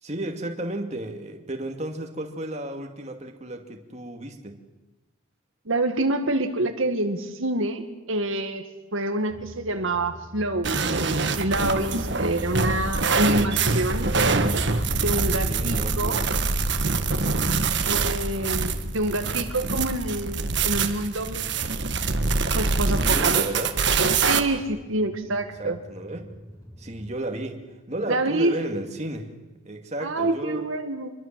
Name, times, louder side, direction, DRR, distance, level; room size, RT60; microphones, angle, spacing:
voice 1, 0.0-4.6 15.5-16.3 17.5-17.8 22.9-23.8 25.6-26.3 26.8-29.3 29.6-30.6, right 1 dB, 30° right, 3 dB, 2.4 m, -33 dB
voice 2, 5.7-7.8 8.1-8.6 8.9-14.1 14.9-16.2 17.8-21.5 22.5-23.4 24.3-25.8 28.1-28.5 30.0-31.1, right 2 dB, 75° right, 5 dB, 2.0 m, -27 dB
sound 1, 9.3-27.2, equal, 15° left, 4.7 m, -40 dB
sound 2, 10.6-24.4, right 4 dB, 55° right, 1.6 m, -24 dB
27.0 x 22.5 x 7.7 m, 1.1 s
head